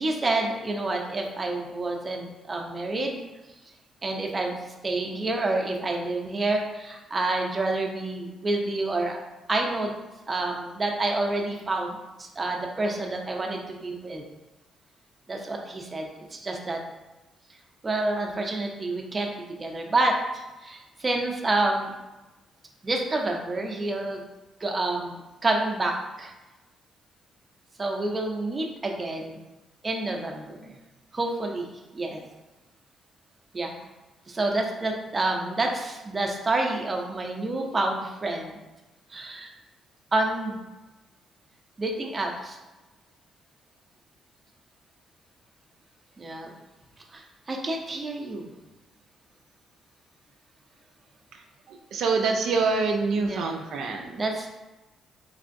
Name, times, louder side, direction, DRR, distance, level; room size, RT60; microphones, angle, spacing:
voice 1, 0.0-3.2 4.0-4.6 4.8-9.2 9.5-9.9 10.3-14.2 15.3-16.8 17.8-21.9 22.8-24.3 24.6-26.3 27.8-29.4 29.8-30.8 31.1-32.2 33.5-33.7 34.3-38.6 39.1-39.5 40.1-40.6 41.8-42.6 46.2-46.5 47.1-48.5 53.2-53.5 54.2-54.5, right 2 dB, 30° right, 1 dB, 0.6 m, -28 dB
voice 2, 51.7-54.2, right 4 dB, 75° right, 1 dB, 0.4 m, -26 dB
3.6 x 3.3 x 2.6 m, 1.1 s
cardioid pair, 90°, 0 cm